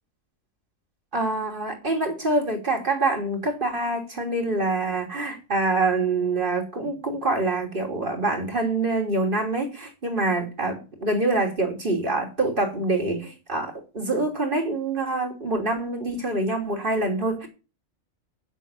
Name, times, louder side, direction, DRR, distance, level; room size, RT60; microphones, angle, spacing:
voice 1, 1.1-17.5, right 2 dB, 40° right, 3.3 m, -25 dB
9.4 x 8.1 x 7.0 m
omnidirectional pair, 1.4 m